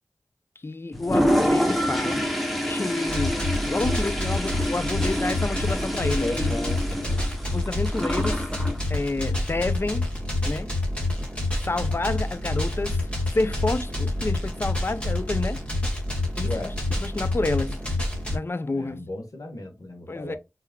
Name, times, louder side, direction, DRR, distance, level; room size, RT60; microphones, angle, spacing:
voice 1, 0.6-2.3 2.6-6.5 7.5-8.5 8.9-10.1 10.4-10.7 11.7-15.6 16.3-17.8 18.3-19.0 20.1-20.4, left 2 dB, 40° left, 0.5 m, -29 dB
Toilet flush, 0.9-8.8, equal, ahead, 1.3 m, -27 dB
sound 1, 3.1-18.4, left 1 dB, 20° left, 1.9 m, -28 dB
voice 2, 6.2-7.2 16.4-16.8 18.7-20.4, left 1 dB, 70° left, 1.4 m, -35 dB
4.4 x 3.5 x 2.3 m
cardioid pair, 50°, 6 cm